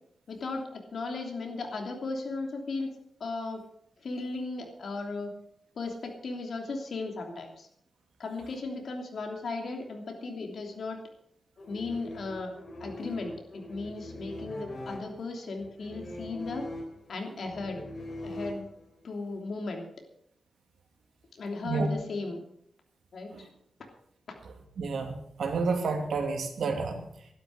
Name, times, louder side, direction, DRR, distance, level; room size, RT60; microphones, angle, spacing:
voice 1, 0.3-2.9 3.2-3.6 4.0-5.3 5.7-7.7 8.2-11.0 11.7-12.5 12.8-16.7 17.1-17.8 18.2-18.7 19.0-19.9 21.3-22.4 23.1-23.5, left 3 dB, 65° left, 3 dB, 3.0 m, -36 dB
sound 1, 11.6-19.1, left 1 dB, 45° left, 3.8 m, -42 dB
voice 2, 24.4-27.3, right 4 dB, 90° right, 4 dB, 2.6 m, -31 dB
12.0 x 12.0 x 6.5 m, 0.71 s
wide cardioid pair, 130°, 0 cm